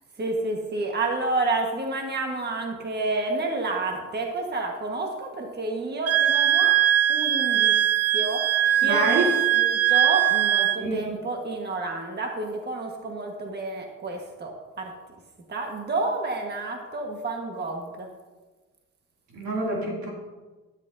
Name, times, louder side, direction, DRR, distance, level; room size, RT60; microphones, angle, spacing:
voice 1, 0.2-6.7 7.1-7.7 8.1-9.3 9.5-14.5 14.8-14.9 15.5-18.1, right 2 dB, 35° right, 1 dB, 1.5 m, -29 dB
Wind instrument woodwind instrument, 6.1-10.8, right 11 dB, 55° right, 0.6 m, -21 dB
voice 2, 8.8-9.2 10.8-11.1 19.3-20.1, right 3 dB, 80° right, -2 dB, 2.9 m, -27 dB
12.5 x 10.5 x 2.8 m, 1.2 s
cardioid pair, 90°, 30 cm